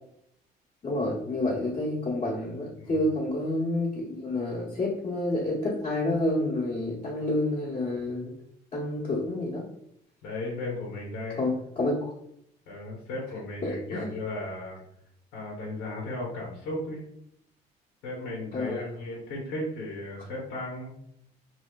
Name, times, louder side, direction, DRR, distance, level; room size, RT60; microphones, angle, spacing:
voice 1, 0.8-8.3 8.7-9.6 11.4-12.1 13.6-14.0 18.5-18.9, left 1 dB, 40° left, -6 dB, 1.0 m, -29 dB
voice 2, 10.2-11.5 12.7-14.8 15.3-17.1 18.0-21.0, left 1 dB, 90° left, -2 dB, 1.0 m, -35 dB
3.0 x 2.8 x 2.3 m, 0.74 s
cardioid pair, 110°, 17 cm